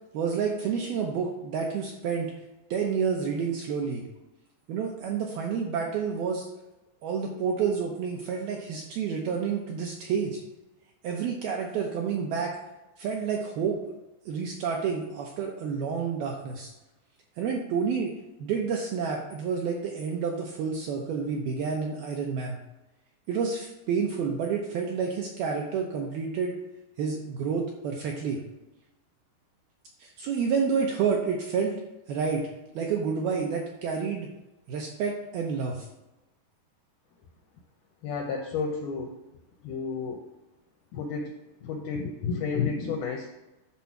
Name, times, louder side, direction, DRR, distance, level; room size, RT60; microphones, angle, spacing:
voice 1, 0.1-2.3 2.7-4.1 4.7-6.5 7.0-10.4 11.0-12.5 13.0-13.9 14.3-16.7 17.4-18.1 18.4-22.6 23.3-26.6 27.0-28.4 30.0-31.8 32.1-32.4 32.8-34.3 34.7-35.9, right 6 dB, 80° right, 0 dB, 2.2 m, -29 dB
voice 2, 38.0-39.2 39.6-40.3 40.9-41.3 41.6-43.3, left 5 dB, 85° left, 2 dB, 2.1 m, -31 dB
10.5 x 4.1 x 5.9 m, 1.0 s
omnidirectional pair, 5.2 m